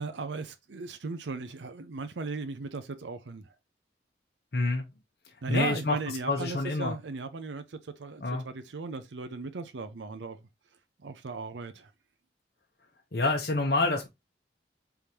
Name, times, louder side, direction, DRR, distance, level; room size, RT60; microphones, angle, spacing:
voice 1, 0.0-3.5 5.4-10.4 11.0-11.9, right 4 dB, 85° right, 0.6 m, -37 dB
voice 2, 4.5-4.9 5.5-6.0 6.3-6.9 8.2-8.4 13.1-14.1, left 3 dB, 55° left, 0.8 m, -27 dB
4.9 x 3.5 x 2.8 m
head